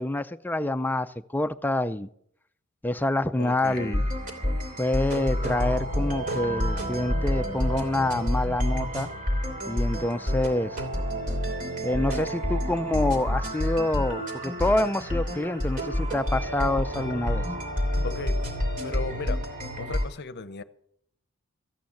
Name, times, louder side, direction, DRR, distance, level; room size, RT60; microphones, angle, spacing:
voice 1, 0.0-2.1 2.8-4.1 4.8-9.1 9.7-10.8 11.8-17.4, left 1 dB, 10° left, 11 dB, 0.4 m, -27 dB
voice 2, 3.4-4.1 18.0-18.4 18.8-19.4 19.8-20.6, left 3 dB, 50° left, 14 dB, 0.8 m, -35 dB
sound 1, 3.6-20.0, equal, 40° right, 3.0 m, -29 dB
14.5 x 9.0 x 7.0 m, 0.70 s
head